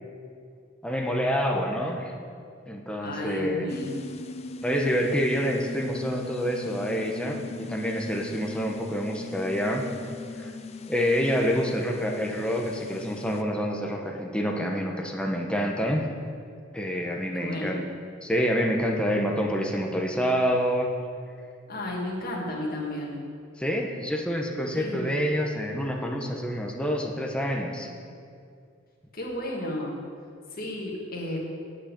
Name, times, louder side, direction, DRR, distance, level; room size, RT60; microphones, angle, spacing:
voice 1, 0.8-2.1 2.7-3.7 4.6-9.9 10.4-10.5 10.9-16.1 16.7-17.8 18.2-20.9 23.6-27.9, equal, 5° left, 1 dB, 1.0 m, -27 dB
voice 2, 3.0-4.0 17.3-17.7 21.7-23.2 24.7-25.0 29.1-30.0 30.6-31.4, left 1 dB, 50° left, -2 dB, 2.0 m, -33 dB
sound 1, 3.7-13.4, left 3 dB, 30° left, 0.4 m, -39 dB
8.3 x 6.4 x 8.2 m, 2.3 s
head